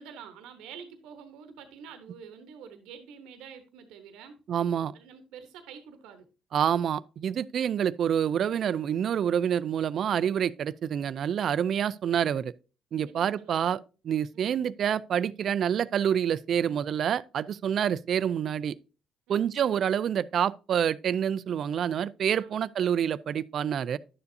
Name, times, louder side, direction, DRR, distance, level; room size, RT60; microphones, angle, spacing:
voice 1, 0.0-4.4 4.9-6.3 13.0-13.8 14.3-14.5 19.3-19.5 22.4-22.7, right 7 dB, 85° right, 1.0 m, -47 dB
voice 2, 4.5-4.9 6.5-12.5 12.9-13.8 14.0-18.7 19.3-24.0, right 9 dB, 55° right, 0.4 m, -27 dB
11.0 x 6.9 x 2.7 m
cardioid pair, 90°, 0 cm